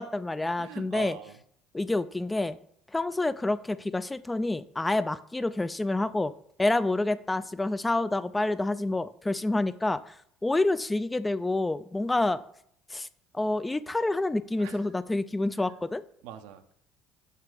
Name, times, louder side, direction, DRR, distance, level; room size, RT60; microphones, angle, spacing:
voice 1, 0.0-1.2 1.7-2.6 2.9-6.3 6.6-10.2 10.4-12.4 12.9-13.1 13.3-16.0, left 2 dB, 15° left, 14 dB, 0.3 m, -28 dB
voice 2, 0.6-1.4 14.6-14.8 15.5-15.8 16.2-16.7, right 11 dB, 70° right, 9 dB, 0.5 m, -43 dB
6.6 x 2.9 x 4.8 m, 0.66 s
hypercardioid pair, 60°, 0 cm